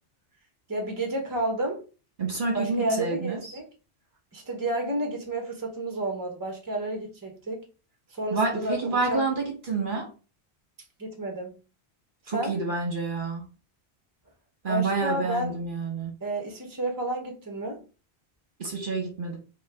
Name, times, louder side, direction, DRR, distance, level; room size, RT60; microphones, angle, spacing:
voice 1, 0.7-1.8 2.5-3.7 4.3-7.7 8.1-9.2 11.0-11.5 12.3-12.5 14.7-15.6 16.2-17.8, right 1 dB, 20° right, 1.0 m, -31 dB
voice 2, 2.2-3.6 8.3-10.1 12.3-13.4 14.6-16.1 18.6-19.4, right 3 dB, 55° right, 1.1 m, -28 dB
5.2 x 2.3 x 3.4 m
omnidirectional pair, 1.1 m